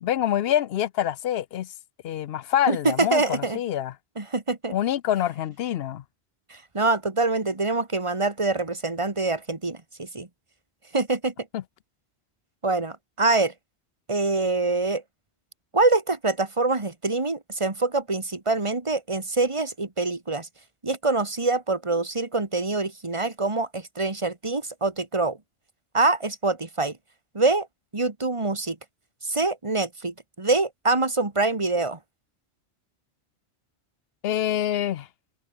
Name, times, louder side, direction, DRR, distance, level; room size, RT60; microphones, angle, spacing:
voice 1, 0.0-1.7 2.0-3.9 4.7-6.0 11.5-11.6 34.2-35.1, left 11 dB, 65° left, 0.8 m, -26 dB
voice 2, 2.7-3.6 4.2-4.8 6.5-10.3 10.9-11.3 12.6-13.5 14.1-15.0 15.7-20.5 20.8-25.4 25.9-27.0 27.3-27.7 27.9-28.8 29.3-32.0, right 3 dB, 25° right, 2.0 m, -25 dB
open air
omnidirectional pair, 1.2 m